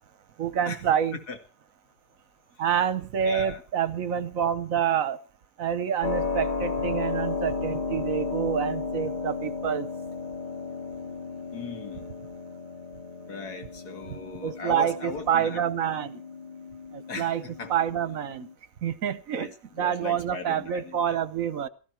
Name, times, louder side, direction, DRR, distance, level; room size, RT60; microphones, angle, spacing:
voice 1, 0.4-1.2 2.6-5.2 5.6-9.9 14.1-16.2 16.9-17.4 17.7-18.5 18.8-19.5 19.8-21.7, right 9 dB, 60° right, 1.3 m, -27 dB
voice 2, 3.2-3.6 11.5-12.0 13.3-15.6 17.1-17.7 19.4-21.2, left 4 dB, 90° left, 2.7 m, -38 dB
Keyboard (musical), 6.0-18.5, left 4 dB, 30° left, 3.1 m, -34 dB
17.0 x 15.0 x 4.4 m
omnidirectional pair, 1.6 m